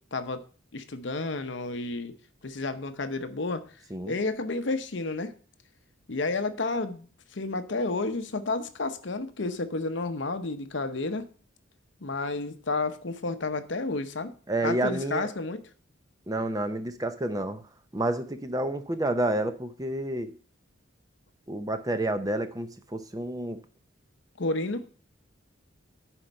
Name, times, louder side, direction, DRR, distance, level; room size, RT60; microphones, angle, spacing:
voice 1, 0.1-0.4 0.7-2.1 2.4-3.7 4.1-5.3 6.1-11.3 12.0-14.3 14.6-15.6 24.4-24.9, left 3 dB, 60° left, 10 dB, 0.8 m, -31 dB
voice 2, 14.5-15.3 16.3-17.6 17.9-20.3 21.5-23.6, right 1 dB, 20° right, 9 dB, 0.6 m, -29 dB
10.0 x 4.6 x 5.4 m, 0.42 s
head